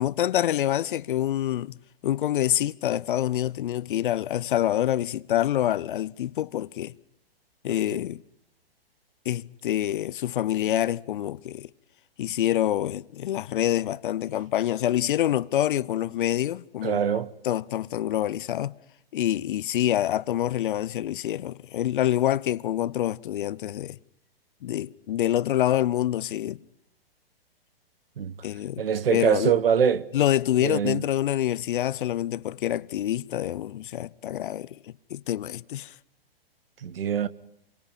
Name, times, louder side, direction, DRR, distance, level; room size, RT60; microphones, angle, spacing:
voice 1, 0.0-1.7 2.0-6.9 7.6-8.2 9.2-11.7 12.2-17.0 17.4-18.7 19.1-24.0 24.6-26.6 28.4-28.8 29.1-29.5 30.1-35.9, left 12 dB, 55° left, 0.8 m, -26 dB
voice 2, 16.8-17.3 28.2-28.3 28.8-30.0 30.6-31.0 36.8-37.3, right 8 dB, 65° right, 1.4 m, -23 dB
28.5 x 23.5 x 5.5 m
figure-of-eight pair, 115°, 30 cm